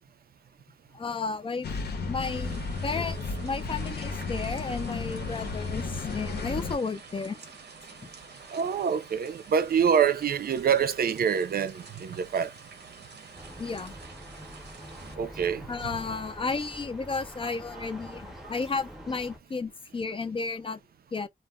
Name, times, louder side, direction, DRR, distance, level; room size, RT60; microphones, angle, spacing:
voice 1, 0.9-1.7 2.1-7.4 8.0-8.1 13.6-13.9 15.7-20.8 21.1-21.3, left 4 dB, 30° left, 0.3 m, -33 dB
sound 1, 1.6-6.8, left 4 dB, 75° left, 0.6 m, -33 dB
sound 2, 2.2-15.2, right 4 dB, 80° right, 0.8 m, -48 dB
voice 2, 8.5-12.5 15.2-15.7, right 7 dB, 60° right, 0.4 m, -26 dB
sound 3, 13.4-19.4, equal, ahead, 0.7 m, -45 dB
2.2 x 2.0 x 3.4 m
wide cardioid pair, 160°, 17 cm